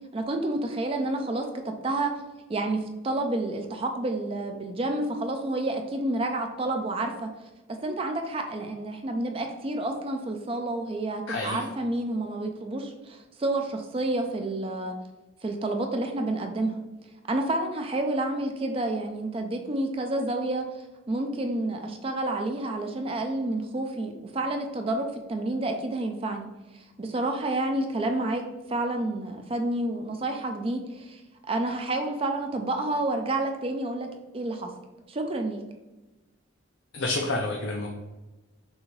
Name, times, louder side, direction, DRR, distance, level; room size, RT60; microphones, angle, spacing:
voice 1, 0.1-2.1 2.5-7.3 7.7-15.0 15.4-16.8 17.3-20.6 21.1-26.5 26.7-28.4 28.7-31.2 31.5-34.1 34.3-34.7 35.1-35.6, right 2 dB, 30° right, 4 dB, 0.4 m, -29 dB
voice 2, 11.3-11.6 36.9-37.9, left 2 dB, 75° left, 0 dB, 0.6 m, -28 dB
6.1 x 2.5 x 3.2 m, 1.1 s
head